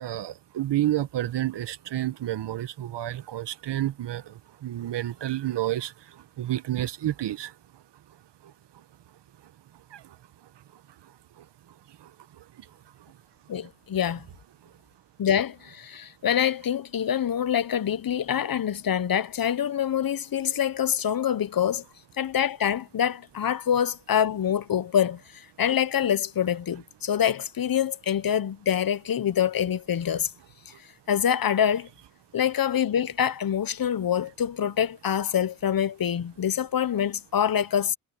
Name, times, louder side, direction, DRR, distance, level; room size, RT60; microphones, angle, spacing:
voice 1, 0.0-4.3 4.6-5.9 6.4-7.5 9.9-10.0, right 13 dB, 80° right, 1.2 m, -29 dB
voice 2, 13.5-14.2 15.2-21.8 22.2-30.3 30.7-30.8 31.1-31.9 32.3-38.0, left 9 dB, 55° left, 1.0 m, -25 dB
cardioid pair, 60°, 41 cm